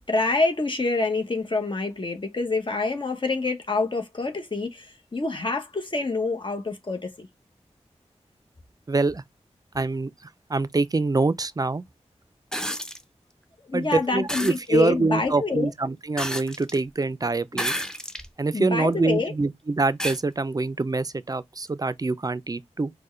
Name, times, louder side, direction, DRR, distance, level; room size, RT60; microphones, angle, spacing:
voice 1, 0.0-7.3 13.7-15.7 18.5-19.3, left 3 dB, 45° left, 0.8 m, -26 dB
voice 2, 8.9-9.2 9.7-10.1 10.5-11.8 13.7-17.7 18.4-22.9, right 3 dB, 30° right, 0.4 m, -25 dB
sound 1, 12.5-13.0 14.3-14.6 16.2-16.8 17.5-18.3 18.9-19.0 20.0-20.2 21.7-21.8, equal, 5° left, 0.6 m, -30 dB
4.3 x 2.1 x 3.1 m
cardioid pair, 40°, 12 cm